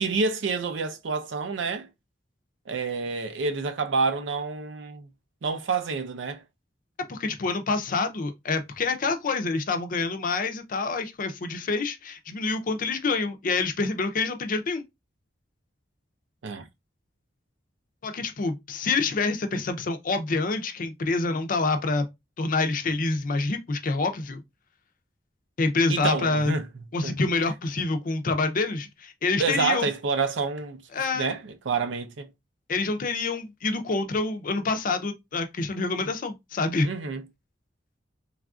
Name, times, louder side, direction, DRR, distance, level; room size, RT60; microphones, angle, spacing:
voice 1, 0.0-1.9 2.7-5.1 5.4-6.4 16.4-16.7 25.9-27.1 29.4-30.8 31.1-32.3 36.8-37.2, right 4 dB, 85° right, 0.5 m, -28 dB
voice 2, 7.1-14.8 18.0-22.1 22.4-24.4 25.6-26.5 26.9-29.9 30.9-31.3 32.7-36.9, left 3 dB, 50° left, 0.5 m, -27 dB
3.3 x 2.4 x 2.3 m
head